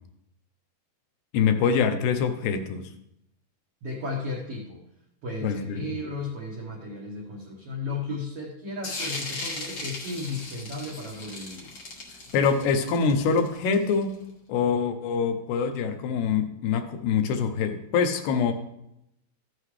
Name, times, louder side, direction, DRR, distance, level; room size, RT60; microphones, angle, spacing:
voice 1, 1.3-2.8 5.4-5.8 12.3-14.2 14.5-18.5, left 6 dB, 90° left, 6 dB, 2.9 m, -24 dB
voice 2, 3.8-4.8 5.2-11.7, left 2 dB, 80° right, -2 dB, 1.3 m, -34 dB
sound 1, 8.8-14.1, left 2 dB, 60° left, 1.2 m, -37 dB
13.5 x 7.6 x 3.2 m, 0.83 s
omnidirectional pair, 4.6 m